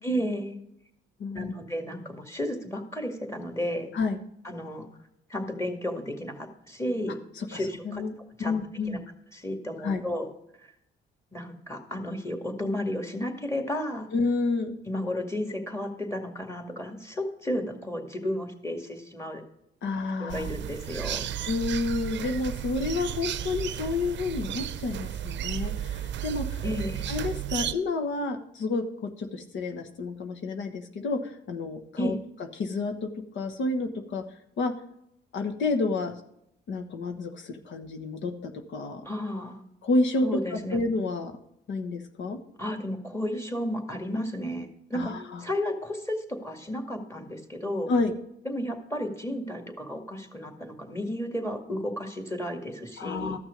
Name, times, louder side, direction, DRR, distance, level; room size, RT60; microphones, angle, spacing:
voice 1, 0.0-0.6 1.3-3.9 4.4-4.9 5.3-7.2 7.5-8.0 8.4-8.6 8.9-9.0 9.3-10.3 10.6-10.7 11.3-14.1 14.9-19.4 20.2-21.3 26.6-27.1 32.0-32.2 39.1-39.6 40.2-40.8 42.6-47.9 48.5-53.4, equal, 15° left, 4 dB, 2.1 m, -33 dB
voice 2, 1.2-1.5 3.9-4.2 7.4-7.6 7.8-8.1 8.4-9.0 9.8-10.0 14.1-14.8 19.8-20.5 21.5-26.6 27.1-32.1 32.6-34.2 34.6-34.7 35.3-36.1 36.7-39.1 39.8-41.3 41.7-42.4 44.9-45.4 47.9-48.1 53.0-53.4, left 3 dB, 70° left, 7 dB, 1.3 m, -30 dB
sound 1, 20.3-27.7, right 10 dB, 65° right, 0.6 m, -33 dB
13.5 x 6.2 x 5.2 m, 0.77 s
cardioid pair, 90°, 20 cm